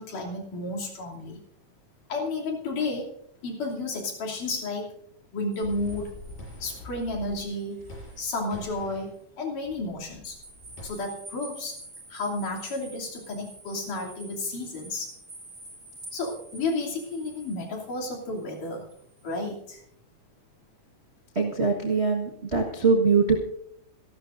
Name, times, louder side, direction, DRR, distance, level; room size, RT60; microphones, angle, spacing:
voice 1, 0.0-1.4 2.1-3.1 3.4-4.9 5.3-6.1 6.6-7.8 8.2-10.4 10.8-11.8 12.1-15.1 16.1-18.9 19.2-19.8, left 2 dB, 65° left, -2 dB, 4.5 m, -32 dB
sound 1, 5.5-8.7 9.1-9.2 10.4-19.4, right 2 dB, 25° right, 6.6 m, -48 dB
sound 2, 5.6-7.5 7.8-9.1 9.6-10.8, left 1 dB, 85° left, 8.2 m, -44 dB
voice 2, 21.3-23.4, right 4 dB, 80° right, -1 dB, 0.5 m, -22 dB
27.0 x 12.0 x 2.6 m, 0.71 s
omnidirectional pair, 3.9 m